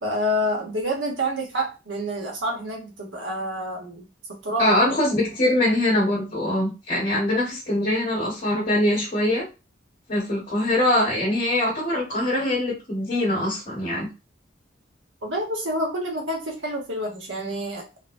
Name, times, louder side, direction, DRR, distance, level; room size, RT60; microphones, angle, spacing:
voice 1, 0.0-4.1 4.4-4.7 15.2-17.8, equal, 85° right, 0 dB, 1.2 m, -28 dB
voice 2, 4.6-9.4 10.1-14.1, left 1 dB, 40° left, -5 dB, 1.5 m, -23 dB
3.9 x 2.2 x 2.6 m, 0.28 s
head